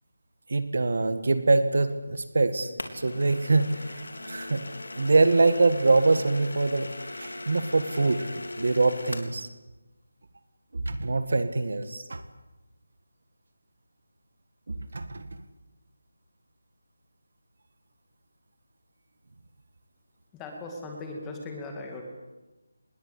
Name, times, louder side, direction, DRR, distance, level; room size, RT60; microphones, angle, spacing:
voice 1, 0.5-4.7 5.0-9.5 10.7-12.2 14.7-15.4, right 3 dB, 45° right, 10 dB, 1.8 m, -24 dB
sound 1, 2.8-9.4, left 2 dB, 75° left, 3.8 m, -39 dB
voice 2, 20.3-22.0, left 2 dB, 5° left, 2 dB, 2.2 m, -38 dB
26.5 x 21.0 x 8.4 m, 1.1 s
figure-of-eight pair, 180°, 0 cm